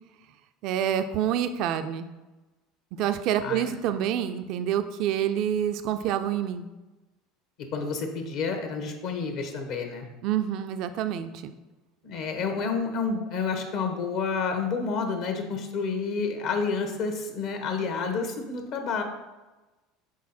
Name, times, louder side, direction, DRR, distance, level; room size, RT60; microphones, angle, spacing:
voice 1, 0.6-2.1 2.9-6.7 10.2-11.5, right 10 dB, 60° right, 9 dB, 0.4 m, -27 dB
voice 2, 3.4-3.7 7.7-10.1 12.0-19.0, left 5 dB, 65° left, 4 dB, 1.1 m, -29 dB
6.3 x 4.0 x 4.2 m, 1.1 s
hypercardioid pair, 85°, 0 cm